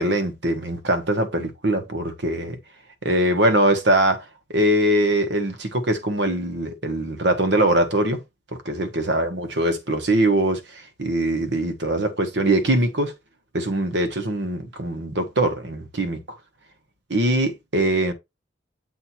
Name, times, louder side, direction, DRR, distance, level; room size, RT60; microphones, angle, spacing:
voice 1, 0.0-2.6 3.0-4.2 4.5-8.2 8.6-13.1 13.5-16.4 17.1-18.1, right 1 dB, 75° right, 1.3 m, -22 dB
7.7 x 2.8 x 4.3 m
head